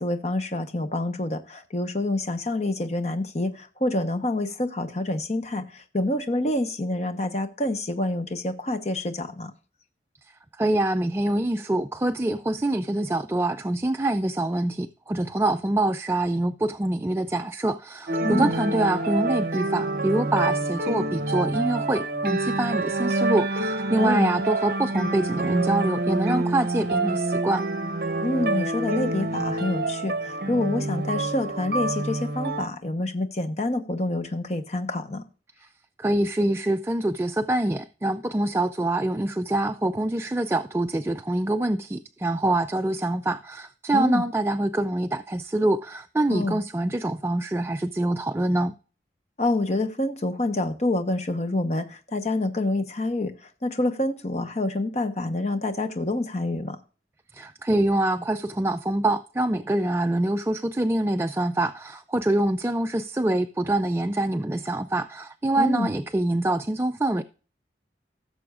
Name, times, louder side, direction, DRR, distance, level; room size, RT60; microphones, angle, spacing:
voice 1, 0.0-9.5 18.2-18.5 24.0-24.3 28.2-35.2 43.9-44.2 46.3-46.6 49.4-53.3 53.6-56.8 65.5-65.9, left 2 dB, 40° left, 1.0 m, -27 dB
voice 2, 10.6-27.6 35.6-35.7 36.0-48.7 57.3-67.2, right 1 dB, 15° right, 0.3 m, -25 dB
sound 1, 18.1-32.7, right 2 dB, 55° right, 0.9 m, -27 dB
16.0 x 6.9 x 2.4 m
head